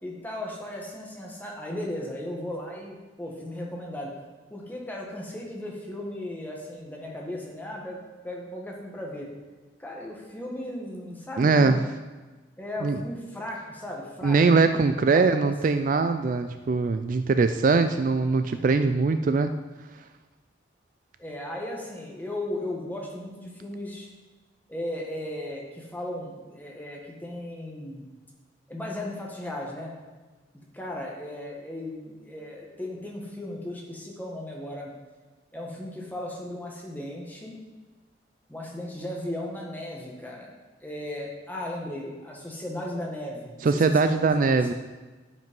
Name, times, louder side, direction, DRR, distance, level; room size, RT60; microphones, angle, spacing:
voice 1, 0.0-4.1 4.5-8.0 8.2-9.3 9.8-11.9 12.6-14.4 15.1-15.5 21.2-24.1 24.7-28.0 28.7-29.9 30.7-34.9 35.5-37.6 38.5-40.5 40.8-44.7, left 1 dB, 10° left, -2 dB, 1.6 m, -36 dB
voice 2, 11.4-11.8 12.8-13.0 14.2-19.5 43.6-44.7, right 4 dB, 45° right, 9 dB, 0.3 m, -22 dB
10.5 x 5.3 x 5.3 m, 1.3 s
head